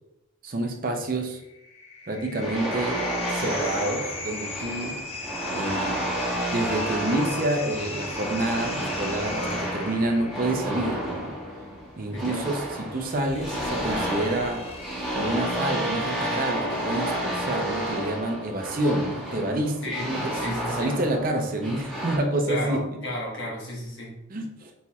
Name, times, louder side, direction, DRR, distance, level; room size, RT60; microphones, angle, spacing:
voice 1, 0.4-1.4 2.1-5.0 5.5-6.1 6.5-11.4 12.0-14.6 15.1-22.8 24.3-24.7, right 1 dB, 45° right, 3 dB, 0.5 m, -28 dB
sound 1, 1.3-15.9, left 3 dB, 30° left, 0.4 m, -38 dB
sound 2, 2.4-22.2, right 1 dB, ahead, 1.2 m, -31 dB
voice 2, 12.1-12.5 19.8-20.9 22.5-24.1, left 1 dB, 60° left, -3 dB, 1.3 m, -33 dB
Bowed string instrument, 15.4-19.1, left 1 dB, 75° right, 0.9 m, -43 dB
4.3 x 4.2 x 2.3 m, 0.88 s
head